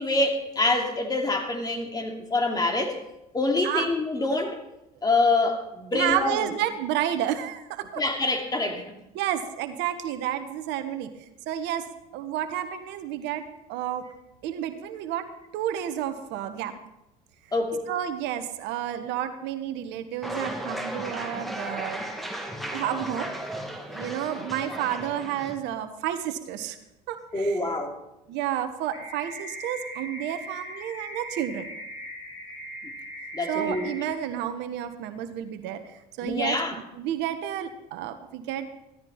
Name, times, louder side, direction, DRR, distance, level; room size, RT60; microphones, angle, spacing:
voice 1, 0.0-3.0 3.3-4.6 5.0-6.5 8.0-8.8 17.5-17.9 27.3-28.0 33.3-33.9 36.2-36.8, left 2 dB, 20° left, 3 dB, 2.9 m, -26 dB
voice 2, 5.9-8.0 9.1-11.8 12.1-13.4 13.7-14.0 14.4-15.3 15.5-16.7 17.9-22.1 22.7-23.3 23.9-26.8 27.1-27.7 28.3-31.7 33.5-36.6 37.0-38.7, right 11 dB, 65° right, 9 dB, 1.3 m, -31 dB
sound 1, 20.2-25.6, right 1 dB, ahead, 2.4 m, -35 dB
sound 2, 28.9-33.9, equal, 70° left, 5.2 m, -39 dB
16.0 x 13.0 x 4.4 m, 0.90 s
hypercardioid pair, 70°, 19 cm